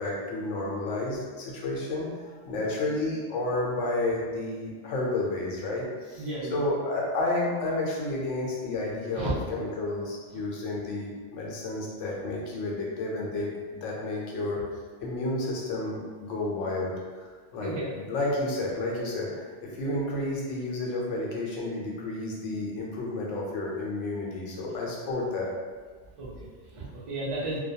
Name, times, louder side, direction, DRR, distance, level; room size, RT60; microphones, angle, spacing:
voice 1, 0.0-14.7 15.0-25.5, left 2 dB, 80° left, -3 dB, 1.0 m, -31 dB
voice 2, 6.2-6.6 9.1-9.3 17.6-17.9 19.7-19.9 26.2-27.6, right 2 dB, 50° right, -5 dB, 0.4 m, -34 dB
2.3 x 2.2 x 2.7 m, 1.5 s
omnidirectional pair, 1.2 m